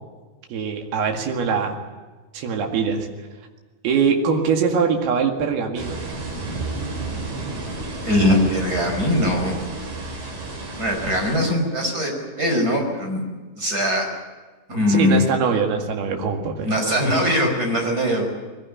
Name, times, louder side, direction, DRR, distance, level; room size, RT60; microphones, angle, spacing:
voice 1, 0.5-1.8 2.3-3.1 3.8-6.0 14.9-16.7, right 6 dB, 75° right, 2 dB, 4.0 m, -22 dB
sound 1, 5.8-11.4, right 3 dB, 55° right, 5.8 m, -31 dB
voice 2, 8.0-9.6 10.8-12.1 12.4-13.2 13.6-14.1 14.7-15.3 16.6-18.3, left 1 dB, 20° right, 2 dB, 5.2 m, -21 dB
21.5 x 18.0 x 9.9 m, 1.3 s
omnidirectional pair, 4.7 m